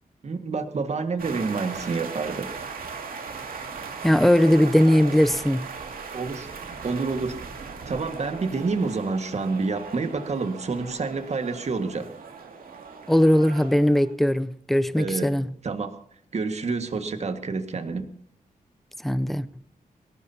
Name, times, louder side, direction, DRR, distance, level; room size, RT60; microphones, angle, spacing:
voice 1, 0.2-2.5 6.1-6.5 6.8-7.4 7.9-12.1 15.0-15.3 15.6-16.0 16.3-18.1, right 4 dB, 50° right, 1.8 m, -28 dB
sound 1, 1.2-14.1, right 5 dB, 75° right, 2.4 m, -38 dB
voice 2, 4.0-5.7 13.1-15.5 19.0-19.5, equal, ahead, 0.5 m, -19 dB
23.0 x 18.0 x 2.8 m
wide cardioid pair, 125°, 15 cm